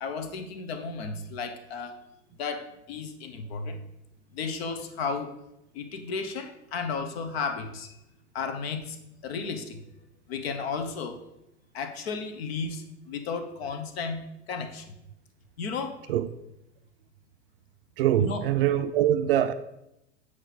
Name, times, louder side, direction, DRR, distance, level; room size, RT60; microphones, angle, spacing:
voice 1, 0.0-2.0 2.4-3.8 4.3-5.3 5.7-7.9 8.3-9.0 9.2-9.8 10.3-11.2 11.7-14.2 14.5-14.9 15.6-16.0 18.2-18.4, left 5 dB, 55° left, 0.9 m, -33 dB
voice 2, 18.0-19.5, right 11 dB, 50° right, 0.4 m, -23 dB
7.7 x 4.8 x 4.0 m
figure-of-eight pair, 85°, 36 cm